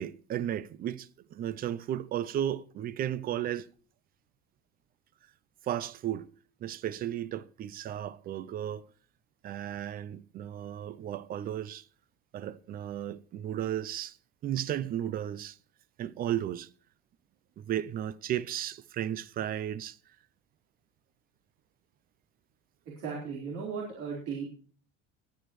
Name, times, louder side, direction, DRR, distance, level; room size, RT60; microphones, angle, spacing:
voice 1, 0.0-3.7 5.6-6.3 6.6-8.9 9.4-11.9 12.3-14.2 14.4-15.6 16.0-16.7 17.6-20.0, right 11 dB, 30° right, 0.5 m, -34 dB
voice 2, 23.0-24.5, right 5 dB, 55° right, 4.5 m, -36 dB
21.5 x 9.1 x 3.2 m
cardioid pair, 165°, 29 cm